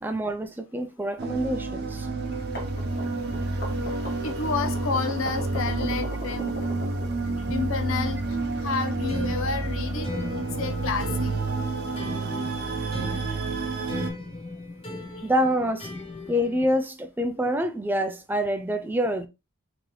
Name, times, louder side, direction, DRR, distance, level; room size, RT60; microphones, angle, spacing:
voice 1, 0.0-2.1 15.2-15.9 16.3-19.3, equal, 10° right, 0.3 m, -26 dB
sound 1, 1.2-14.1, right 3 dB, 50° right, 0.7 m, -29 dB
sound 2, 2.3-7.5, right 1 dB, 45° left, 1.3 m, -39 dB
voice 2, 4.2-6.9 7.5-10.1 10.4-11.3, left 4 dB, 80° left, 0.7 m, -30 dB
sound 3, 9.1-16.8, left 2 dB, 25° left, 1.0 m, -38 dB
3.8 x 2.9 x 3.0 m
head